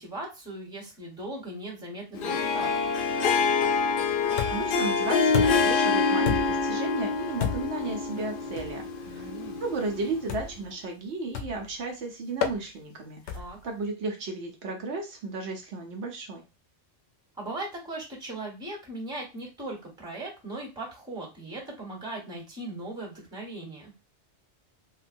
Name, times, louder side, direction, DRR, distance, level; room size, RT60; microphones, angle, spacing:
voice 1, 0.0-2.8 9.0-9.6 13.3-13.6 17.4-23.9, right 2 dB, 5° right, -2 dB, 1.2 m, -38 dB
Harp, 2.1-10.4, left 4 dB, 60° left, 0.6 m, -26 dB
sound 1, 4.4-4.8 5.3-5.8 6.2-6.7 7.4-7.8 8.6-8.8 10.3-10.6 11.3-11.7 12.4-12.6 13.3-13.6, left 8 dB, 80° left, 0.9 m, -31 dB
voice 2, 4.5-9.3 9.6-16.4, right 3 dB, 75° right, 1 dB, 1.0 m, -34 dB
3.8 x 2.2 x 2.5 m, 0.28 s
omnidirectional pair, 1.2 m